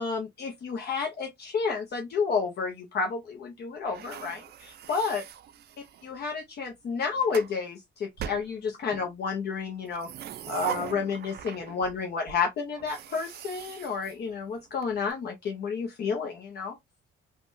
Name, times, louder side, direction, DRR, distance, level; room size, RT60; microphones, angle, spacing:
voice 1, 0.0-5.2 6.0-10.1 10.5-16.8, left 5 dB, 55° left, 0.7 m, -31 dB
sound 1, 3.9-6.1 6.9-7.5 8.2-9.1 9.8-12.0 12.3-12.4 12.8-14.8, right 10 dB, 55° right, 0.4 m, -40 dB
3.3 x 2.2 x 2.5 m
cardioid pair, 90°, 20 cm